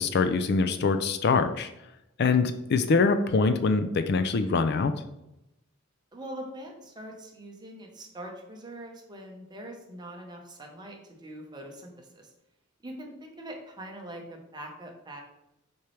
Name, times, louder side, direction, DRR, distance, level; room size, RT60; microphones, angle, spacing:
voice 1, 0.0-1.7 2.2-4.9, left 4 dB, 50° left, 9 dB, 0.4 m, -24 dB
voice 2, 6.1-12.3 12.8-15.2, right 1 dB, 20° right, 1 dB, 1.0 m, -43 dB
6.7 x 4.4 x 3.3 m, 0.87 s
head